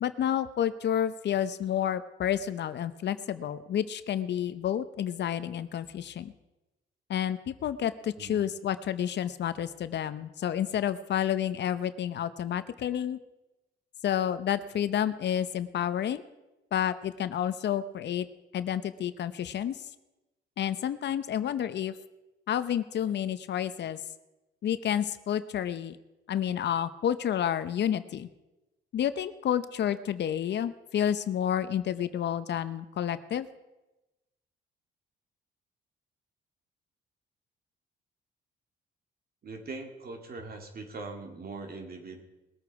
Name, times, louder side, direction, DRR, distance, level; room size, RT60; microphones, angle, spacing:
voice 1, 0.0-6.3 7.1-13.2 14.0-16.2 16.7-18.3 18.5-19.8 20.6-22.0 22.5-24.0 24.6-26.0 26.3-28.3 28.9-33.5, left 10 dB, 60° left, 13 dB, 0.8 m, -30 dB
voice 2, 39.4-42.2, right 3 dB, 50° right, 4 dB, 2.5 m, -41 dB
20.0 x 8.4 x 4.8 m, 1.0 s
cardioid pair, 90°, 20 cm